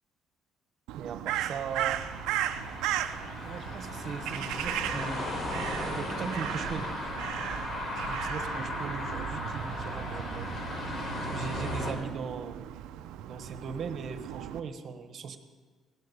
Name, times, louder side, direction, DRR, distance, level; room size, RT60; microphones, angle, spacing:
voice 1, 0.9-2.0 3.4-6.9 8.0-10.5 11.3-12.6 13.3-15.4, right 6 dB, 55° right, 9 dB, 1.2 m, -39 dB
Crow, 0.9-14.6, right 11 dB, 90° right, 0.6 m, -36 dB
sound 1, 1.7-11.9, left 1 dB, 50° left, 3.4 m, -36 dB
17.0 x 7.9 x 6.9 m, 1.4 s
cardioid pair, 110°, 0 cm